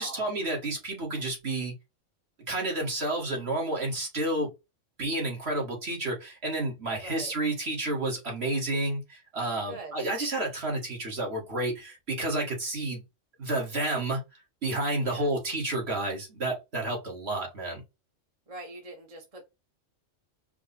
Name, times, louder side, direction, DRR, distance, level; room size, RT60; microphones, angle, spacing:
voice 1, 0.0-1.7 2.5-4.5 5.0-13.0 13.4-14.2 14.6-17.8, right 2 dB, 55° right, 2.1 m, -30 dB
voice 2, 7.0-7.3 9.7-10.0 15.0-15.3 18.5-19.4, right 2 dB, 30° right, 1.1 m, -42 dB
4.7 x 2.4 x 4.1 m
omnidirectional pair, 1.3 m